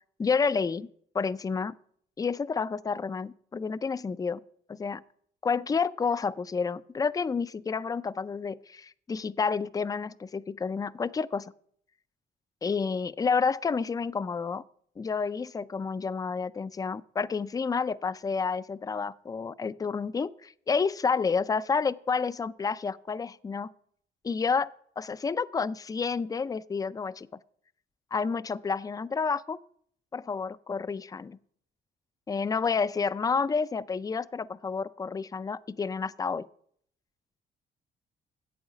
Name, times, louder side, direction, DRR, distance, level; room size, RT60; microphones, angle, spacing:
voice 1, 0.2-0.9 1.1-1.7 2.2-4.4 4.7-5.0 5.4-11.5 12.6-14.6 15.0-23.7 24.2-24.7 25.0-27.3 28.1-29.6 30.1-31.4 32.3-36.5, left 5 dB, 20° left, 17 dB, 0.4 m, -30 dB
11.0 x 8.0 x 4.9 m, 0.64 s
cardioid pair, 90°, 20 cm